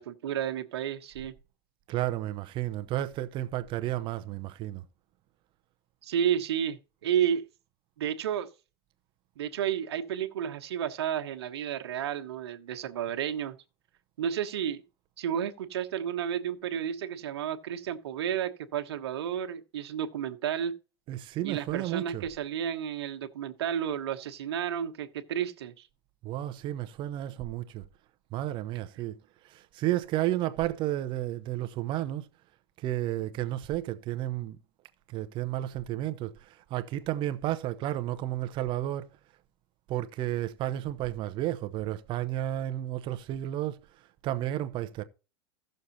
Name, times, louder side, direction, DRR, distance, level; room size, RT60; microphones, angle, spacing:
voice 1, 0.0-1.3 6.0-7.4 8.0-8.5 9.4-13.6 14.2-14.8 15.2-20.7 21.4-25.9, right 9 dB, 85° right, 1.3 m, -31 dB
voice 2, 1.9-4.8 21.1-22.3 26.2-27.8 28.3-29.2 29.4-32.3 32.8-34.6 35.1-39.1 39.9-43.8 44.2-45.0, right 14 dB, 40° right, 0.8 m, -32 dB
16.0 x 6.6 x 2.8 m
supercardioid pair, 135°, 13 cm